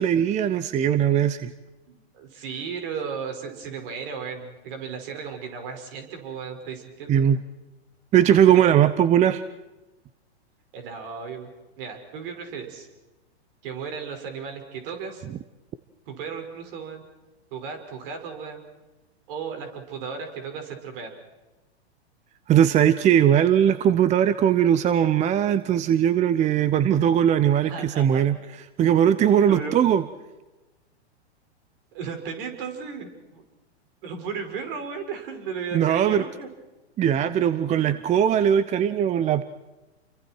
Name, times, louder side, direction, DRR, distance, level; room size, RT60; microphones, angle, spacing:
voice 1, 0.0-1.5 7.1-7.4 8.1-9.4 22.5-28.4 28.8-30.0 35.7-36.2 37.0-39.4, right 9 dB, 20° right, 14 dB, 0.7 m, -20 dB
voice 2, 1.9-7.2 10.7-11.5 11.8-12.9 13.6-15.2 16.1-17.0 17.5-18.6 19.3-21.1 27.7-28.3 29.5-29.8 31.9-33.4 34.0-36.5, right 6 dB, 55° right, 5 dB, 5.8 m, -35 dB
29.0 x 24.0 x 4.6 m, 1.1 s
hypercardioid pair, 115°, 33 cm